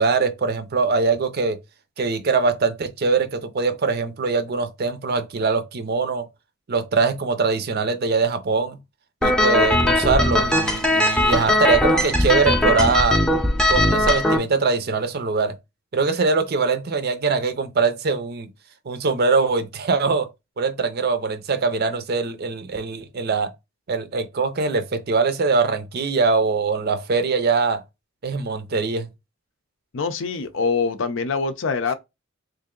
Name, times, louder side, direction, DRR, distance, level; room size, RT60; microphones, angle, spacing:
voice 1, 0.0-1.6 2.0-6.2 6.7-8.8 9.2-13.2 13.7-15.6 15.9-18.5 18.9-20.3 20.6-23.5 23.9-27.8 28.2-29.1, right 4 dB, 50° right, 0.6 m, -22 dB
sound 1, 9.2-14.4, left 1 dB, 5° left, 0.6 m, -19 dB
voice 2, 29.9-31.9, left 4 dB, 70° left, 0.5 m, -24 dB
3.2 x 2.5 x 3.7 m
head